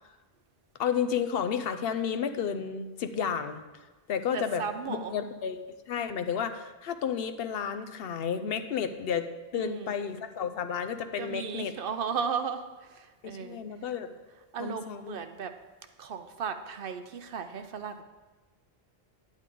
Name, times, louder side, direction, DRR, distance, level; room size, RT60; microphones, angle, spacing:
voice 1, 0.8-3.6 4.1-4.6 4.9-5.6 5.9-9.3 9.5-11.8 13.4-14.1 14.6-15.2, left 7 dB, 70° left, 10 dB, 0.8 m, -31 dB
voice 2, 4.3-5.1 9.5-9.9 11.2-13.6 14.5-15.5 16.0-18.0, right 6 dB, 65° right, 8 dB, 0.7 m, -35 dB
9.7 x 9.0 x 3.7 m, 1.3 s
omnidirectional pair, 1.1 m